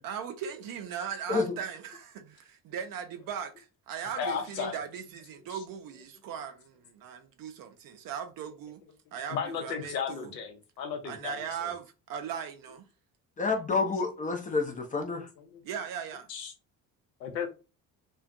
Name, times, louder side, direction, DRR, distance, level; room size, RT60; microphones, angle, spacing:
voice 1, 0.0-8.8 9.1-10.3 11.0-12.8 15.6-16.3, right 7 dB, 45° right, 0.5 m, -38 dB
voice 2, 4.2-4.8 5.5-5.6 9.3-11.7 15.4-15.6 16.3-16.5 17.2-17.5, left 7 dB, 85° left, 0.7 m, -35 dB
voice 3, 13.4-15.3, left 4 dB, 20° left, 0.4 m, -29 dB
2.4 x 2.2 x 2.5 m
figure-of-eight pair, 50°, 49 cm